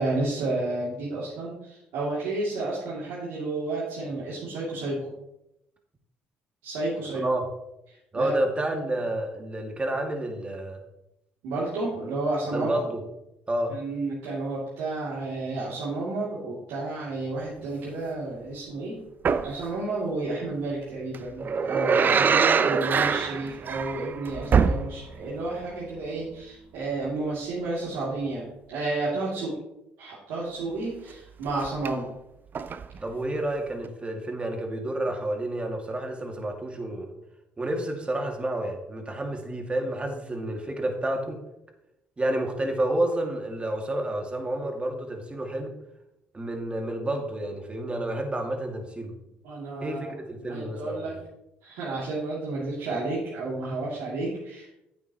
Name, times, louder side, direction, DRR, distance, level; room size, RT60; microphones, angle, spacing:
voice 1, 0.0-5.1 6.6-7.2 8.1-8.3 11.4-12.8 13.7-19.0 19.4-29.6 30.0-32.1 49.4-50.1 50.5-51.2 51.6-54.7, right 2 dB, 85° right, -8 dB, 2.7 m, -31 dB
voice 2, 8.1-10.8 12.5-13.0 13.5-13.8 33.0-37.1 37.6-41.4 42.2-45.7 46.3-49.2 49.8-51.1, right 1 dB, 25° right, 3 dB, 2.2 m, -30 dB
sound 1, 19.2-19.6 21.1-25.3 25.6-25.7 31.5-31.9 32.5-33.0 33.8-33.9, right 6 dB, 45° right, 0.5 m, -24 dB
10.5 x 8.4 x 3.0 m, 0.86 s
supercardioid pair, 65°, 4 cm